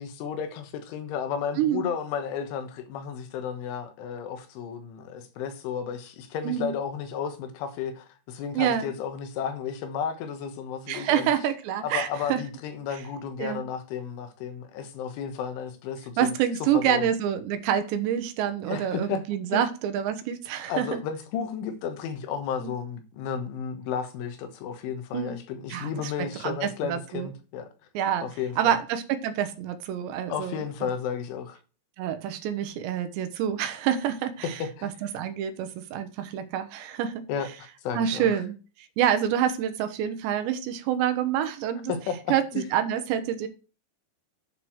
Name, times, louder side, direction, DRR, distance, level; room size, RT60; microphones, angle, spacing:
voice 1, 0.0-11.3 11.8-16.3 16.7-17.1 18.7-19.2 19.5-19.6 20.7-27.7 28.2-28.8 30.3-31.6 34.4-34.9 37.3-38.3 41.9-42.6, left 7 dB, 85° left, 3.7 m, -33 dB
voice 2, 1.6-1.9 6.4-6.7 8.6-8.9 10.9-12.4 13.4-13.7 16.2-21.0 22.6-22.7 25.1-25.4 25.7-26.1 26.4-27.3 27.9-28.3 28.6-30.6 32.0-37.2 37.9-41.9 42.3-42.4 42.7-43.5, right 9 dB, 75° right, 2.9 m, -27 dB
11.0 x 4.6 x 6.3 m
omnidirectional pair, 5.4 m